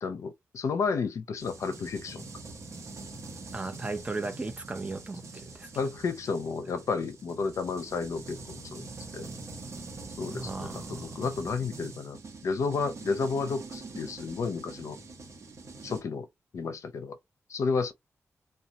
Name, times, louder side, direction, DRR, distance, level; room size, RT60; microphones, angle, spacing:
voice 1, 0.0-2.2 5.7-8.9 9.1-9.3 10.2-12.2 12.4-15.0 15.8-16.3 16.5-17.2 17.5-17.9, left 4 dB, 75° left, 0.5 m, -31 dB
sound 1, 1.4-16.0, right 3 dB, 65° right, 0.9 m, -44 dB
voice 2, 3.5-5.7 10.3-11.2, right 3 dB, 25° right, 0.6 m, -36 dB
2.6 x 2.2 x 2.8 m
wide cardioid pair, 105°, 5 cm